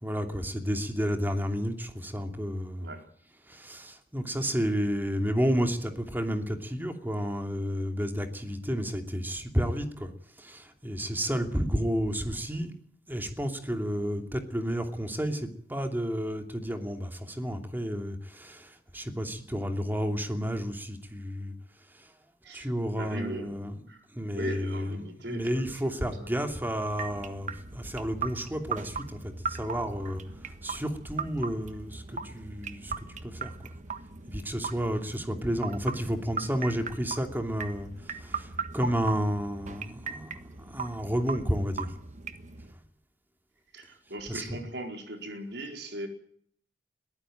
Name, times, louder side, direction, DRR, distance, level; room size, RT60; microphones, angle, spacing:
voice 1, 0.0-2.9 3.5-10.1 10.4-12.7 13.1-21.5 21.9-22.1 22.5-33.0 33.2-33.5 34.3-42.0 44.3-44.6, equal, 10° right, 2.7 m, -31 dB
voice 2, 22.4-23.6 23.9-24.1 24.3-26.3 43.7-46.1, right 1 dB, 75° right, 4.6 m, -39 dB
sound 1, 26.9-42.7, right 5 dB, 45° right, 1.4 m, -39 dB
21.5 x 15.0 x 9.1 m
head